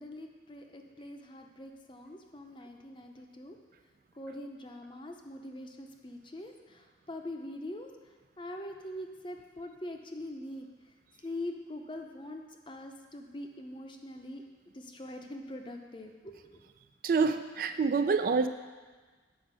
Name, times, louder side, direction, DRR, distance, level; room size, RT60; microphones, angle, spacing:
voice 1, 0.0-3.6 4.1-7.9 8.4-10.7 11.2-14.4 14.7-16.6, left 1 dB, 25° left, 3 dB, 0.6 m, -43 dB
voice 2, 17.0-18.5, right 4 dB, 50° right, 9 dB, 0.3 m, -27 dB
8.2 x 5.0 x 6.1 m, 1.4 s
head